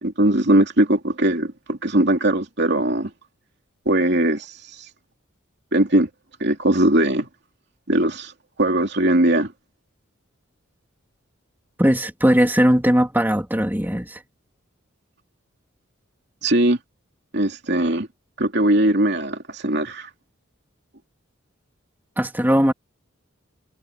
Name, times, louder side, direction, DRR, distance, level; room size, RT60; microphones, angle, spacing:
voice 1, 0.0-3.1 3.8-4.8 5.7-6.1 6.4-7.3 7.9-8.3 8.6-9.5 16.4-16.8 17.3-18.1 18.4-20.1, right 1 dB, 55° right, 2.9 m, -20 dB
voice 2, 11.8-14.2 22.2-22.7, equal, 10° right, 3.0 m, -19 dB
head